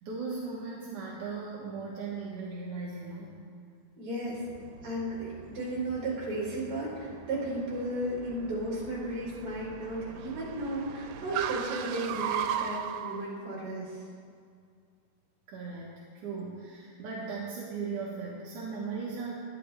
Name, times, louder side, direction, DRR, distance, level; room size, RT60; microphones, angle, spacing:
voice 1, 0.0-3.4 15.5-19.4, right 4 dB, 60° right, -5 dB, 2.3 m, -38 dB
voice 2, 4.0-4.4 4.8-14.1, right 1 dB, 30° right, -6 dB, 4.5 m, -34 dB
Car, 4.3-13.2, right 8 dB, 90° right, 3.0 m, -39 dB
20.0 x 12.5 x 3.4 m, 2.3 s
omnidirectional pair, 5.2 m